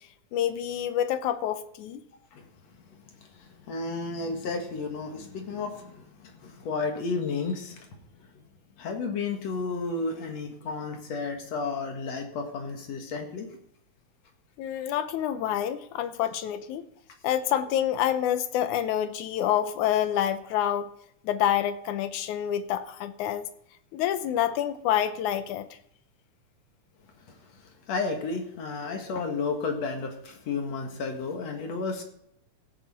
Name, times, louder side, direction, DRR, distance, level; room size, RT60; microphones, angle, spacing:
voice 1, 0.3-2.0 14.6-16.8 17.2-20.9 21.2-23.5 23.9-25.7, left 10 dB, 85° left, 11 dB, 2.3 m, -27 dB
voice 2, 2.9-7.9 8.2-8.4 8.8-13.5 27.3-32.0, left 4 dB, 60° left, 4 dB, 2.7 m, -33 dB
16.0 x 9.2 x 4.2 m, 0.71 s
omnidirectional pair, 3.5 m